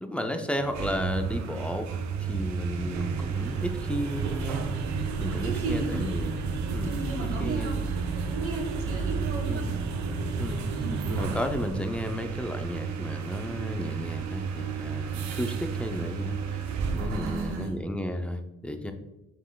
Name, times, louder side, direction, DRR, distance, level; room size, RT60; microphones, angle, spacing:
voice 1, 0.0-1.9 2.2-4.7 5.2-6.4 6.7-7.8 9.5-9.7 10.4-10.6 11.1-16.6 16.9-18.9, left 1 dB, 5° left, 6 dB, 0.4 m, -33 dB
sound 1, 0.6-17.7, right 5 dB, 65° right, 0.6 m, -31 dB
voice 2, 5.4-6.1 6.8-7.8 8.1-9.7 10.7-11.1 17.1-17.7, right 3 dB, 50° right, -1 dB, 1.3 m, -35 dB
5.3 x 3.5 x 2.3 m, 1.0 s
cardioid pair, 90°, 30 cm